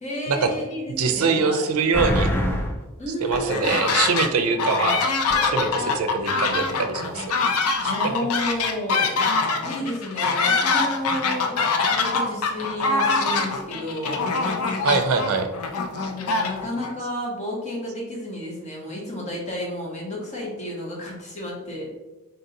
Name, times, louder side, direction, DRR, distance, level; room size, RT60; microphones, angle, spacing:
voice 1, 0.0-1.7 3.0-3.8 7.8-9.1 9.6-14.3 15.9-21.9, left 1 dB, 30° left, -3 dB, 1.2 m, -31 dB
voice 2, 1.0-2.3 3.2-5.1 5.4-7.3 7.8-7.9 14.8-15.5, right 5 dB, 75° right, 7 dB, 0.5 m, -23 dB
sound 1, 1.9-2.8 3.3-4.2 4.5-4.7 5.3-6.2 6.6-6.7, equal, 10° left, 0.4 m, -27 dB
sound 2, 3.3-4.3 4.6-16.9, left 4 dB, 80° left, 0.5 m, -24 dB
4.0 x 2.7 x 3.9 m, 1.1 s
head